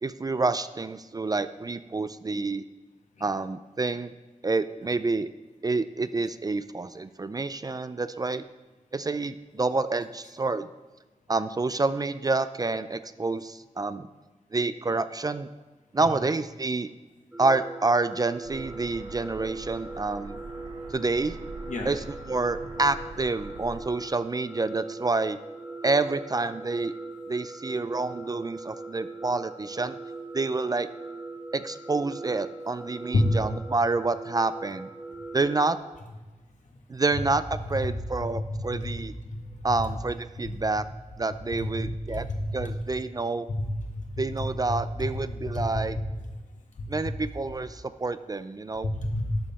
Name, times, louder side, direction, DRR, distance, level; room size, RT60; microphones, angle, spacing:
voice 1, 0.0-2.6 3.2-4.1 4.4-5.3 5.6-8.4 8.9-10.7 11.3-14.1 14.5-15.5 15.9-16.9 17.4-20.4 20.9-21.4 21.8-25.4 25.8-26.9 27.3-30.0 30.3-30.9 31.5-34.9 35.3-35.8 36.9-39.1 39.6-40.9 41.2-42.3 42.5-43.5 44.2-46.0 46.9-48.9, right 3 dB, 30° right, 12 dB, 0.4 m, -28 dB
sound 1, 17.3-35.8, right 3 dB, 10° right, 1.0 m, -41 dB
sound 2, 18.4-23.8, right 2 dB, 85° right, 2.0 m, -44 dB
voice 2, 42.1-42.7 43.5-44.2 44.7-45.1 45.5-45.6 48.8-49.4, left 1 dB, 65° left, 1 dB, 1.6 m, -28 dB
11.5 x 5.5 x 4.2 m, 1.2 s
cardioid pair, 60°, 13 cm